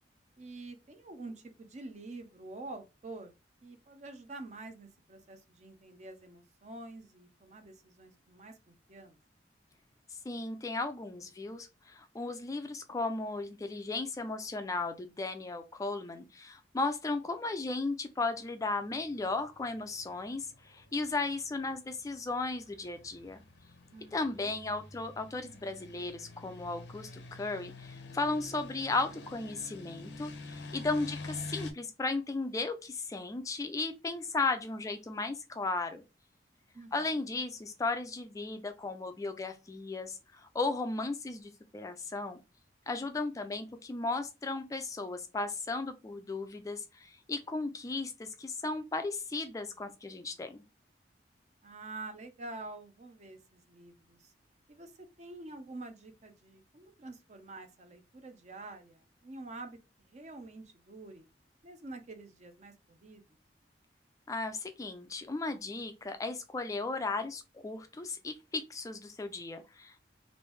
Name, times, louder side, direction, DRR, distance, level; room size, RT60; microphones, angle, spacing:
voice 1, 0.4-3.3 3.6-9.2 23.9-24.5 36.7-37.3 51.6-54.3 54.7-61.2 61.6-63.2, right 2 dB, 40° right, 0.6 m, -47 dB
voice 2, 10.3-23.4 24.1-36.0 36.9-42.4 42.9-50.6 64.3-70.0, left 3 dB, 20° left, 0.3 m, -35 dB
sound 1, 18.8-31.7, left 2 dB, 90° left, 0.6 m, -47 dB
3.2 x 2.6 x 3.2 m
head